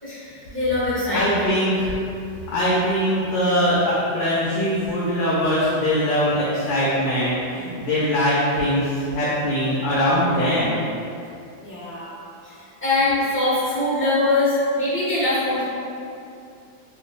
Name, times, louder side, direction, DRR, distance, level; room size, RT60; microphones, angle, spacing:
voice 1, 0.0-1.5 11.6-12.1 12.4-15.6, left 2 dB, 10° left, -13 dB, 0.7 m, -23 dB
voice 2, 1.1-1.9 2.5-10.8, equal, 80° left, -8 dB, 1.3 m, -22 dB
3.1 x 2.5 x 2.5 m, 2.6 s
omnidirectional pair, 2.0 m